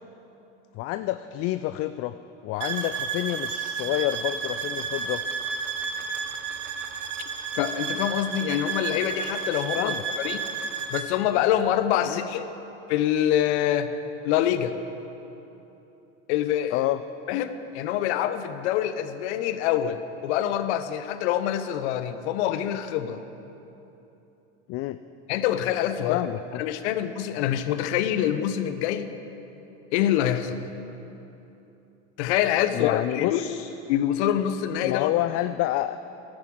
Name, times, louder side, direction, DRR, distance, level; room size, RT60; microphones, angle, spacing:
voice 1, 0.7-2.2 2.4-5.2 9.7-10.0 12.0-12.3 16.7-17.0 24.7-25.0 26.1-26.6 32.7-33.7 34.8-36.0, left 15 dB, 40° left, 12 dB, 0.4 m, -28 dB
sound 1, 2.6-11.1, right 6 dB, 80° right, 1.0 m, -32 dB
voice 2, 7.5-10.4 10.9-12.5 12.9-13.9 14.2-14.7 16.3-16.8 17.3-23.2 25.3-26.2 26.6-29.1 29.9-30.7 32.2-33.4 33.9-35.1, left 11 dB, 65° left, 11 dB, 0.9 m, -25 dB
15.0 x 12.0 x 4.6 m, 3.0 s
hypercardioid pair, 80°, 37 cm